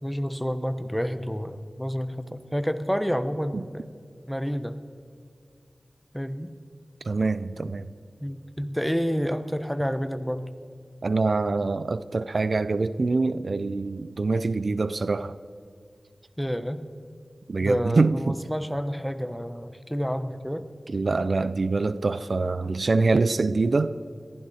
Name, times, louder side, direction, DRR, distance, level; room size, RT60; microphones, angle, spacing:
voice 1, 0.0-3.8 4.3-4.8 6.1-6.5 8.2-10.5 16.4-16.8 17.6-20.7, equal, ahead, 1.0 m, -29 dB
voice 2, 7.0-7.9 11.0-15.4 17.5-18.4 20.9-24.0, right 3 dB, 70° right, 0.5 m, -25 dB
22.0 x 15.0 x 4.3 m
wide cardioid pair, 55°, 0 cm